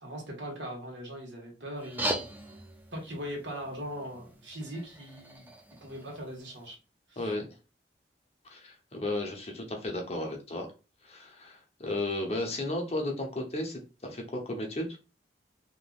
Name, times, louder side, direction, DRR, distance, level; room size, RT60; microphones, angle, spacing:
voice 1, 0.0-2.3 2.9-5.5 5.8-6.8 7.1-7.3, equal, 80° right, 0 dB, 1.5 m, -40 dB
sound 1, 1.8-6.8, right 1 dB, 10° right, 0.4 m, -39 dB
voice 2, 8.4-10.7 11.0-15.0, left 1 dB, 35° left, 1 dB, 0.8 m, -34 dB
3.6 x 2.9 x 2.3 m, 0.31 s
head